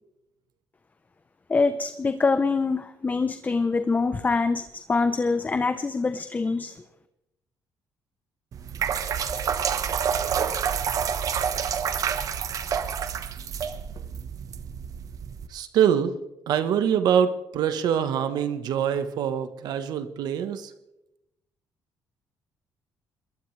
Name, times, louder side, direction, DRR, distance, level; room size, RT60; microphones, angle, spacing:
voice 1, 1.5-4.6 4.9-6.8, left 4 dB, 25° left, 10 dB, 0.9 m, -24 dB
sound 1, 8.5-15.5, right 7 dB, 55° right, 1.3 m, -28 dB
voice 2, 15.5-16.1 16.5-20.7, right 8 dB, 75° right, 10 dB, 1.3 m, -24 dB
22.0 x 19.5 x 3.4 m, 0.88 s
cardioid pair, 105°, 7 cm